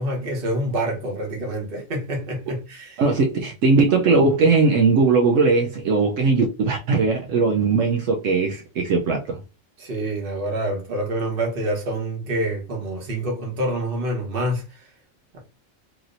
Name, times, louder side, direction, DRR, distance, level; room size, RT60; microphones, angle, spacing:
voice 1, 0.0-3.0 9.8-14.6 15.3-15.4, right 1 dB, 45° right, 1.2 m, -27 dB
voice 2, 3.0-9.4, right 4 dB, 75° right, 1.0 m, -19 dB
3.0 x 2.8 x 2.5 m
omnidirectional pair, 1.4 m